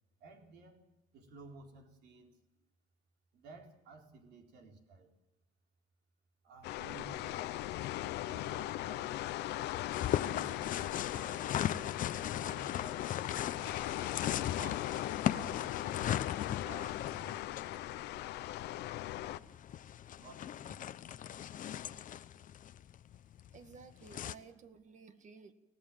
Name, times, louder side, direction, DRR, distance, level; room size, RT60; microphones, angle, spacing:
voice 1, 0.2-0.8 1.1-2.4 3.3-5.1 6.4-7.6 8.2-9.6 10.1-13.9 14.5-16.2 16.6-17.5 20.2-20.9, right 3 dB, 80° right, 4.0 m, -54 dB
sound 1, 6.6-19.4, left 15 dB, 80° left, 0.8 m, -39 dB
sound 2, 9.9-24.3, left 10 dB, 50° left, 0.8 m, -39 dB
voice 2, 23.5-25.5, right 5 dB, 45° right, 1.9 m, -54 dB
24.5 x 17.0 x 7.5 m
cardioid pair, 110°, 17 cm